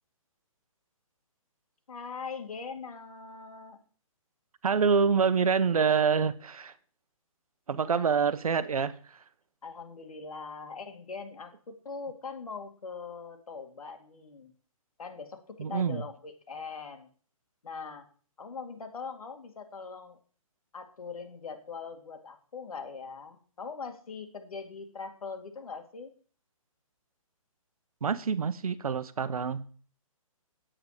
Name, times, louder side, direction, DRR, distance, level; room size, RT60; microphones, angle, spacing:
voice 1, 1.9-3.8 7.9-8.1 9.6-14.5 15.0-17.1 17.6-18.1 18.4-20.2 20.7-26.1, left 5 dB, 80° left, 2.5 m, -41 dB
voice 2, 4.6-6.7 7.7-9.2 15.6-16.0 28.0-29.7, right 6 dB, 85° right, 1.1 m, -26 dB
8.9 x 8.9 x 5.0 m
hypercardioid pair, 175°, 18 cm